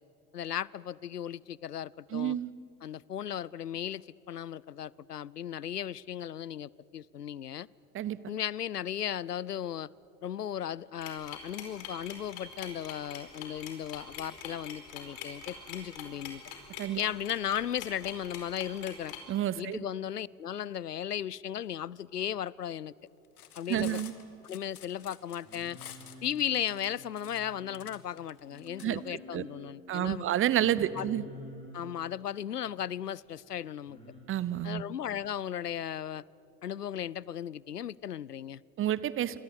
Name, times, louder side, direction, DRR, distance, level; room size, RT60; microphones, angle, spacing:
voice 1, 0.3-2.4 2.8-7.7 8.3-9.9 10.2-16.4 17.0-19.1 19.6-22.9 23.6-24.0 24.4-25.8 26.2-30.2 30.7-31.1 31.7-34.0 34.6-36.2 36.6-38.6, left 10 dB, 90° left, 0.5 m, -36 dB
voice 2, 2.1-2.5 7.9-8.2 16.8-17.0 19.3-19.8 23.7-24.1 28.8-29.4 29.9-31.2 34.3-34.8 38.8-39.4, right 11 dB, 25° right, 0.9 m, -29 dB
sound 1, 11.0-19.2, left 9 dB, 50° left, 4.7 m, -43 dB
Cutlery silverware, 23.2-28.9, left 11 dB, 70° left, 2.0 m, -50 dB
Singing, 25.4-27.9 28.5-29.7 30.6-31.9 33.9-34.2, left 1 dB, 10° left, 7.0 m, -49 dB
27.5 x 25.5 x 8.3 m
figure-of-eight pair, 75°, 46 cm